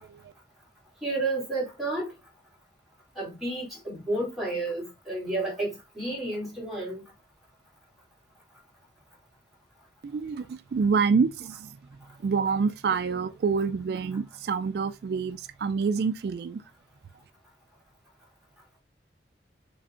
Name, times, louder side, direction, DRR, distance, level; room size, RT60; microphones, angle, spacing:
voice 1, 0.0-0.3 10.0-11.8 12.2-16.6, right 5 dB, 65° right, 0.3 m, -27 dB
voice 2, 1.0-2.1 3.2-7.0, right 2 dB, ahead, 2.5 m, -31 dB
6.2 x 3.4 x 2.5 m
head